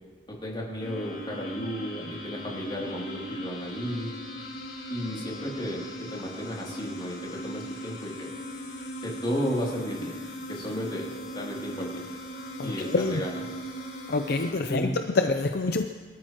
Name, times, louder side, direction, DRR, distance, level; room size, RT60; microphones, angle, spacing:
voice 1, 0.3-4.1 4.9-5.8 6.1-7.2 7.4-8.3 9.0-10.1 10.5-12.1 12.6-13.4 14.7-15.0, equal, 25° left, -3 dB, 2.9 m, -33 dB
sound 1, 0.8-14.5, equal, 85° left, 4.5 m, -39 dB
voice 2, 12.6-13.2 14.1-15.8, left 3 dB, 60° left, 6 dB, 0.6 m, -26 dB
24.5 x 13.0 x 3.0 m, 1.5 s
head